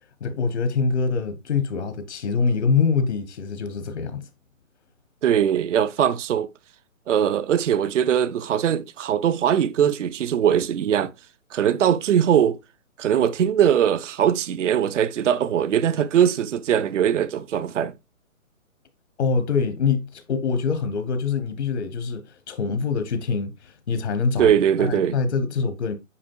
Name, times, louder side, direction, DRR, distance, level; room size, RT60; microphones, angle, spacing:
voice 1, 0.2-4.2 19.2-24.5 24.8-26.0, left 5 dB, 55° left, 1.1 m, -24 dB
voice 2, 5.2-6.5 7.1-11.1 11.5-12.6 13.0-18.0 24.4-25.2, right 9 dB, 65° right, 0.6 m, -21 dB
8.6 x 5.3 x 2.3 m
hypercardioid pair, 150°, 41 cm